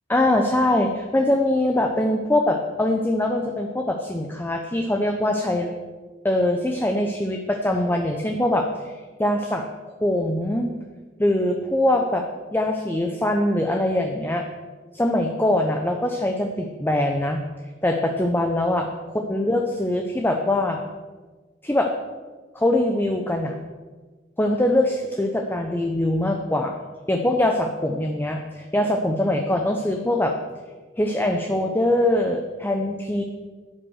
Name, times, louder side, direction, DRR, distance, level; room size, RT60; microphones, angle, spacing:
voice 1, 0.1-5.7 6.2-8.9 9.2-10.7 11.2-12.2 12.5-14.4 14.9-17.4 17.8-18.9 19.3-20.8 21.6-21.9 22.5-23.6 24.4-26.7 27.1-30.3 31.0-33.2, left 1 dB, 10° left, 3 dB, 0.8 m, -22 dB
10.5 x 9.2 x 6.5 m, 1.3 s
head